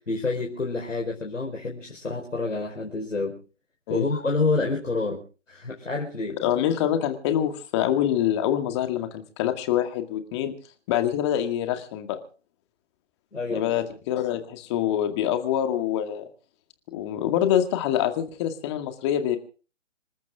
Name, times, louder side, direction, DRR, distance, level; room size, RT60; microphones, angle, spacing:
voice 1, 0.0-3.4 3.9-5.2 5.5-6.4 13.3-13.7, left 3 dB, 75° left, 0 dB, 4.7 m, -28 dB
voice 2, 6.4-10.5 10.9-12.2 13.5-16.2 16.9-19.4, left 11 dB, 20° left, 7 dB, 2.1 m, -25 dB
27.0 x 13.0 x 3.7 m, 0.38 s
figure-of-eight pair, 145°, 38 cm